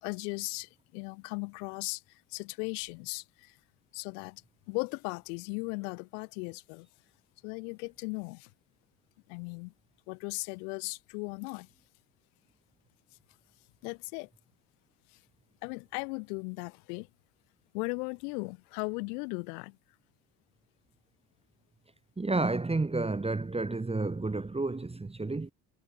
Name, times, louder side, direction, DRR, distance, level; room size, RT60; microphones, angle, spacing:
voice 1, 0.0-3.6 3.9-4.4 4.7-6.9 7.4-8.5 9.3-9.7 10.1-11.7 13.8-14.3 15.6-17.1 17.7-19.8, left 34 dB, 70° left, 2.9 m, -37 dB
voice 2, 22.2-25.5, right 3 dB, 10° right, 1.3 m, -31 dB
figure-of-eight pair, 55°, 48 cm